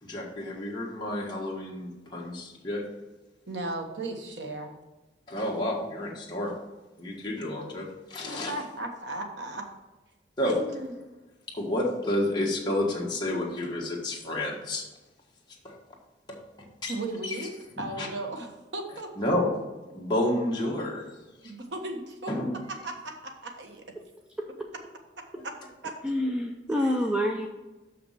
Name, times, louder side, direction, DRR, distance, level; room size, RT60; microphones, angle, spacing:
voice 1, 0.0-2.9 5.3-6.6 7.0-8.6 10.4-10.6 11.5-14.8 15.6-15.8 16.3-16.4 16.8-17.0 17.2-17.3 18.0-18.1 19.2-19.5 19.9-21.1 21.4-21.5 22.3-22.5, left 1 dB, 25° left, -3 dB, 1.5 m, -30 dB
voice 2, 3.5-4.7 8.3-9.7 10.5-10.9 16.9-19.1 21.4-22.3 22.7-23.8 25.1-25.5 25.8-25.9 26.7-27.0, right 2 dB, 85° right, 4 dB, 1.2 m, -36 dB
voice 3, 26.0-27.5, equal, 5° right, 1 dB, 0.5 m, -27 dB
6.1 x 5.9 x 5.6 m, 1.1 s
head